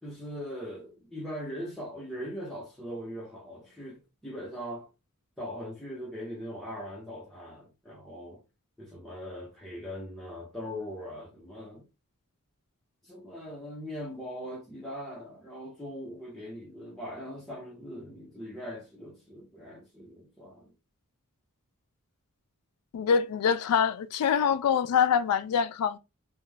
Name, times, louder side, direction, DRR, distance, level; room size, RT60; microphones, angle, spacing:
voice 1, 0.0-4.9 5.4-8.4 8.8-11.9 13.0-20.7, equal, ahead, 0.6 m, -40 dB
voice 2, 22.9-26.0, left 7 dB, 85° left, 0.3 m, -25 dB
2.4 x 2.2 x 3.1 m
head